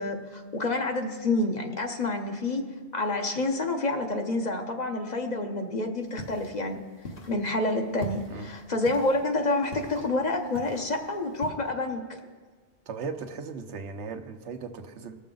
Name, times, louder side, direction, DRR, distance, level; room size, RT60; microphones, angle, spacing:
voice 1, 0.0-2.6 2.9-6.8 7.3-12.2, left 2 dB, 45° left, 4 dB, 0.9 m, -28 dB
sound 1, 6.0-11.5, left 1 dB, 60° left, 1.4 m, -43 dB
voice 2, 12.9-15.1, right 5 dB, 90° right, 7 dB, 1.1 m, -37 dB
19.5 x 6.7 x 3.8 m, 1.5 s
omnidirectional pair, 1.1 m